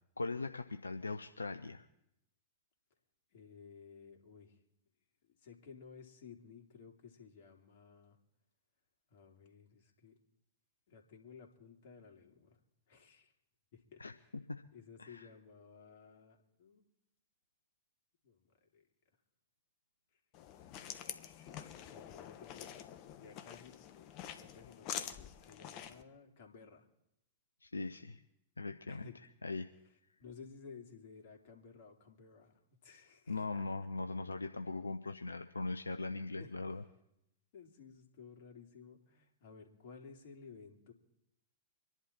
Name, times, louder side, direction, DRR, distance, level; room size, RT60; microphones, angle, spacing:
voice 1, 0.2-1.9 14.0-14.1 14.5-14.6 15.0-15.3 27.6-28.2 28.6-29.1 29.4-29.7 33.3-36.8, left 3 dB, 90° left, 8 dB, 0.6 m, -40 dB
voice 2, 3.3-4.6 5.2-8.2 9.1-10.2 10.9-12.6 12.9-13.3 13.7-14.3 14.7-16.8 18.2-18.9 20.1-20.2 20.6-23.8 24.4-26.9 28.9-29.2 30.2-33.7 35.1-35.2 36.4-36.5 37.5-40.9, left 5 dB, 60° left, 2 dB, 3.0 m, -56 dB
sound 1, 20.3-26.0, left 10 dB, 45° left, 1.2 m, -47 dB
25.0 x 11.0 x 4.4 m, 0.80 s
figure-of-eight pair, 100°, 0 cm